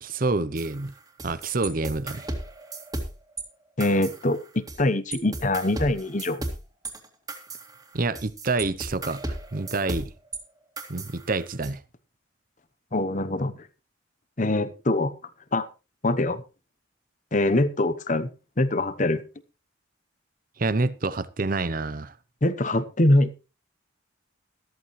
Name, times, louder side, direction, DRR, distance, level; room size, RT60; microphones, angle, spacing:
voice 1, 0.0-0.9 1.2-2.3 7.9-10.1 10.9-11.8 20.6-22.1, right 3 dB, 45° right, 0.7 m, -27 dB
sound 1, 0.6-3.4 3.8-4.8 5.1-10.4 10.8-11.7, right 2 dB, 20° right, 2.3 m, -35 dB
voice 2, 3.8-6.4 12.9-13.6 14.4-15.1 15.5-15.7 16.0-16.4 17.3-18.3 18.6-19.2 22.4-23.3, left 1 dB, 40° left, 1.0 m, -23 dB
14.0 x 13.5 x 3.2 m
head